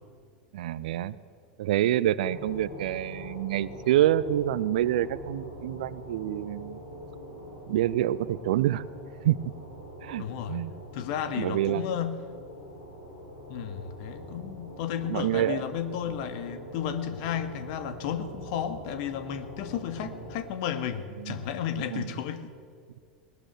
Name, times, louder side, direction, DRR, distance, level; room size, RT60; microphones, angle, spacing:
voice 1, 0.5-1.2 1.6-6.8 7.7-8.8 9.2-9.4 10.0-10.7 11.4-11.8 15.1-15.6 21.2-21.4 21.9-22.1, right 12 dB, 60° right, 18 dB, 0.7 m, -27 dB
sound 1, 2.2-20.4, equal, 80° left, 7.1 m, -44 dB
voice 2, 10.2-10.6 10.9-12.2 13.5-22.5, left 9 dB, 50° left, 10 dB, 2.0 m, -33 dB
20.5 x 19.5 x 9.2 m, 2.1 s
figure-of-eight pair, 85°, 5 cm